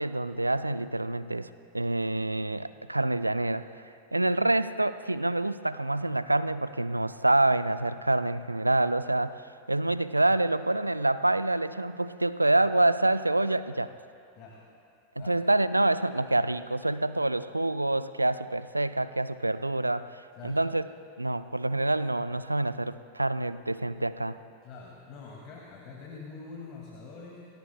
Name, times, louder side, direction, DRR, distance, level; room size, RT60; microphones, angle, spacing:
voice 1, 0.0-13.9 15.2-20.9 21.2-24.4, right 2 dB, 85° right, 14 dB, 0.4 m, -27 dB
voice 2, 24.6-27.4, left 4 dB, 40° left, -1 dB, 2.1 m, -45 dB
28.5 x 19.0 x 2.2 m, 2.5 s
figure-of-eight pair, 90°, 0 cm